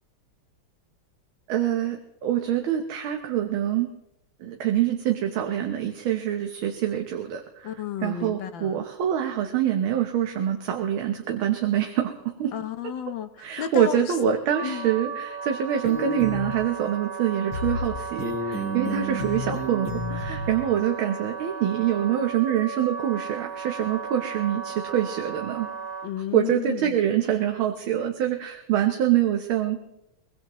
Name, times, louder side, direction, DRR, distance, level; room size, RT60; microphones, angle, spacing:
voice 1, 1.5-3.9 4.4-7.7 8.0-12.5 13.4-25.7 26.3-29.8, right 10 dB, 80° right, 4 dB, 1.8 m, -25 dB
voice 2, 7.6-8.8 12.5-14.1 14.6-14.9 18.8-19.2 26.0-26.9, left 10 dB, 70° left, 10 dB, 1.5 m, -33 dB
Wind instrument woodwind instrument, 14.5-26.1, right 5 dB, 15° right, 2.3 m, -35 dB
sound 1, 15.8-16.5 17.5-17.9 18.2-20.5, left 1 dB, 85° left, 3.7 m, -30 dB
23.0 x 20.5 x 3.0 m, 0.87 s
omnidirectional pair, 2.3 m